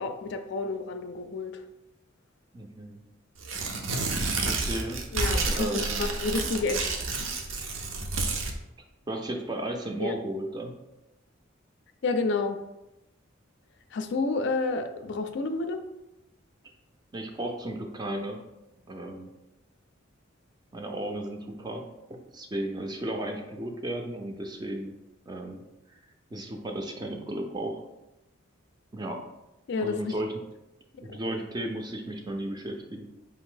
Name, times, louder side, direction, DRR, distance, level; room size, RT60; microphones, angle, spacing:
voice 1, 0.0-1.6 5.1-6.9 7.2-7.3 10.0-10.1 12.0-12.6 13.9-15.8 29.7-30.1 30.9-31.2, left 3 dB, 60° left, 8 dB, 0.4 m, -30 dB
voice 2, 2.5-3.0 4.4-5.0 5.5-6.1 8.2-8.3 9.1-10.7 17.1-18.4 18.9-19.3 20.7-21.8 22.1-24.9 25.3-25.6 26.3-27.8 28.9-29.2 29.8-30.3 31.0-33.1, right 1 dB, 20° right, 3 dB, 0.4 m, -34 dB
Tearing, 3.4-8.5, right 3 dB, 75° right, 0.6 m, -30 dB
4.6 x 2.6 x 3.8 m, 0.95 s
head